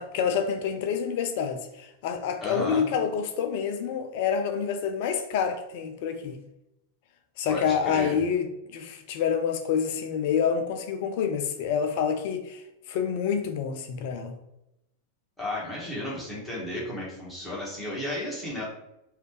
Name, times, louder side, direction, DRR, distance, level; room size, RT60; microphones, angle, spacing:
voice 1, 0.0-6.4 7.4-14.4, left 7 dB, 50° left, 7 dB, 0.3 m, -28 dB
voice 2, 2.4-2.8 7.5-8.2 15.4-18.6, left 1 dB, 5° left, -7 dB, 1.4 m, -33 dB
3.2 x 2.6 x 3.2 m, 0.87 s
figure-of-eight pair, 90°, 0 cm